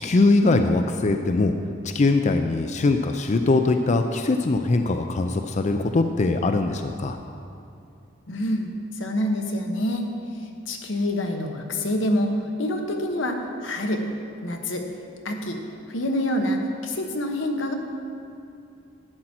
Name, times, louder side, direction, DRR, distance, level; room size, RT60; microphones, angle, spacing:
voice 1, 0.0-1.5 1.8-7.2, left 3 dB, 40° left, 6 dB, 0.4 m, -21 dB
voice 2, 8.3-10.1 10.4-12.3 12.6-14.0 14.4-14.8 15.2-15.6 15.9-17.7, left 1 dB, 90° left, 3 dB, 1.1 m, -26 dB
11.5 x 8.8 x 4.4 m, 2.6 s
head